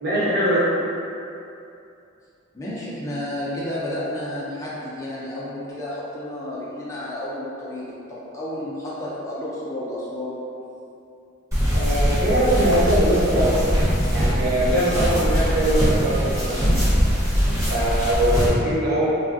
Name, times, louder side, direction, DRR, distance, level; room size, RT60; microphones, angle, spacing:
voice 1, 0.0-0.6 11.7-13.6 14.1-16.7 17.7-19.0, right 1 dB, 55° right, -10 dB, 1.0 m, -22 dB
voice 2, 2.5-10.4 17.6-17.9, left 1 dB, 15° left, -8 dB, 0.4 m, -31 dB
sound 1, 11.5-18.5, equal, 15° right, 0.7 m, -21 dB
3.3 x 2.3 x 2.5 m, 2.6 s
head